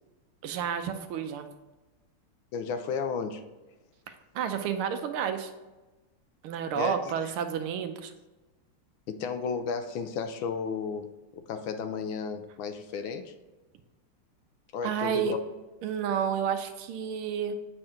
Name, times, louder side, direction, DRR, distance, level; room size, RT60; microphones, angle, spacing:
voice 1, 0.4-1.5 4.3-5.5 6.4-8.1 14.8-15.3 15.8-17.5, right 8 dB, 85° right, 8 dB, 1.5 m, -30 dB
voice 2, 2.5-3.4 6.7-7.1 9.1-11.1 11.5-13.3 14.7-15.4, left 5 dB, 75° left, 9 dB, 1.4 m, -33 dB
7.7 x 4.4 x 3.7 m, 1.1 s
omnidirectional pair, 2.3 m